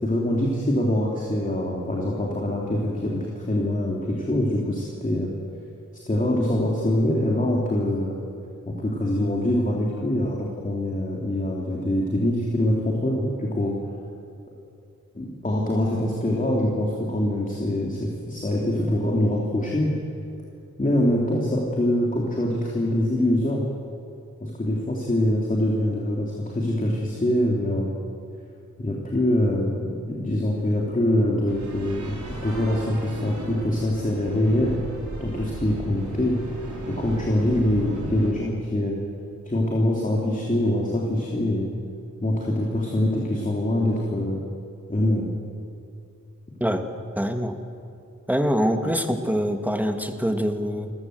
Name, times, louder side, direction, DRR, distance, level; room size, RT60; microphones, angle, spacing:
voice 1, 0.0-5.3 6.1-8.2 8.7-13.7 15.1-19.9 20.8-23.6 24.4-27.9 28.8-34.8 35.2-36.6 36.9-39.0 39.4-41.7 42.2-44.4 44.9-45.3, left 1 dB, 25° left, -2 dB, 3.0 m, -24 dB
sound 1, 31.5-38.3, right 2 dB, 70° right, 4.0 m, -36 dB
voice 2, 47.2-47.6 48.3-50.9, equal, 5° right, 6 dB, 1.8 m, -24 dB
28.5 x 14.5 x 7.9 m, 2.5 s
wide cardioid pair, 95°, 31 cm